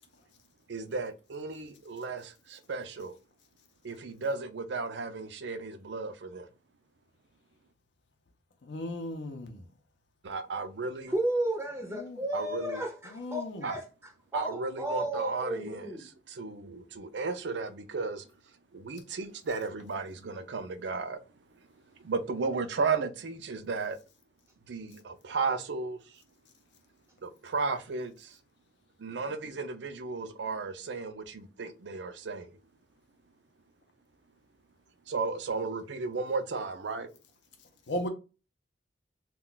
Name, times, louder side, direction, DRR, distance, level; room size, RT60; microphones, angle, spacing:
voice 1, 0.7-3.2 3.8-6.5 10.2-11.2 12.3-12.8 13.6-13.8 14.3-16.0 16.3-18.2 18.7-21.2 22.0-24.0 24.7-26.2 27.2-28.4 29.0-32.6 35.1-37.1, right 4 dB, 80° right, 0.5 m, -34 dB
voice 2, 8.7-9.6 11.9-12.2 13.1-13.7 37.9-38.1, left 1 dB, 75° left, 0.6 m, -36 dB
voice 3, 11.1-13.8 14.3-16.0, right 1 dB, 15° right, 0.5 m, -33 dB
2.3 x 2.2 x 3.8 m
head